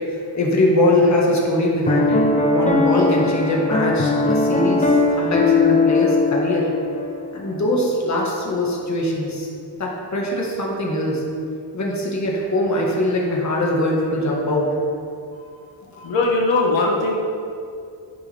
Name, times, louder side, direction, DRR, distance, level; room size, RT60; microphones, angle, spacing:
voice 1, 0.1-6.7 7.3-9.5 9.8-11.2 11.7-14.8, left 1 dB, 40° left, -2 dB, 1.7 m, -22 dB
Piano, 1.9-7.2, left 3 dB, 15° left, 0.7 m, -19 dB
voice 2, 15.9-17.1, left 3 dB, 80° left, -2 dB, 1.5 m, -20 dB
9.9 x 8.5 x 3.5 m, 2.4 s
wide cardioid pair, 115°, 45 cm